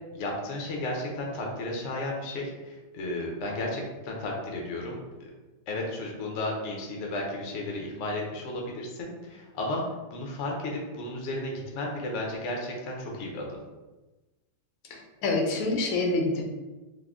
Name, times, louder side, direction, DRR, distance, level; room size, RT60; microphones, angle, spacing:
voice 1, 0.1-5.3 5.7-9.8 10.1-13.6, left 1 dB, 65° left, 0 dB, 0.7 m, -33 dB
voice 2, 14.9-16.4, left 2 dB, 80° left, 1 dB, 1.4 m, -27 dB
3.6 x 2.0 x 3.5 m, 1.2 s
omnidirectional pair, 2.0 m